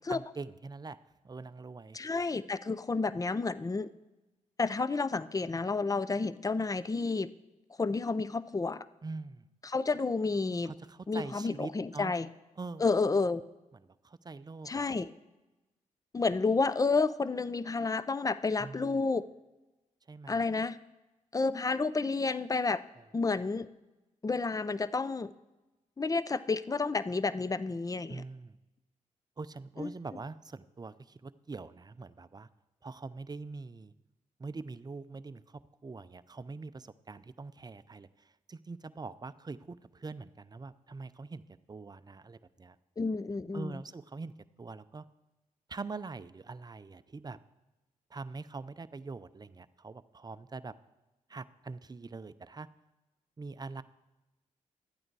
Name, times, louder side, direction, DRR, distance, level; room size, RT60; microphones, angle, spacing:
voice 1, 0.1-1.0 1.2-2.0 9.0-9.5 10.6-12.1 12.6-12.8 13.8-14.9 18.6-19.0 20.1-20.4 28.1-28.6 29.4-32.5 32.8-33.9 34.4-42.8 43.5-44.3 44.6-45.1 45.7-47.4 48.1-50.7 51.3-52.7 53.4-53.8, right 3 dB, 30° right, 14 dB, 0.5 m, -43 dB
voice 2, 1.9-3.9 4.6-7.3 7.8-8.9 9.6-10.7 11.1-12.3 12.8-13.4 14.7-15.1 16.1-19.3 20.3-20.8 21.3-22.8 23.1-23.7 24.2-25.3 26.0-28.2 29.8-29.9 43.0-43.8, left 4 dB, 25° left, 16 dB, 0.5 m, -30 dB
12.0 x 8.8 x 4.7 m, 1.1 s
supercardioid pair, 50°, 14 cm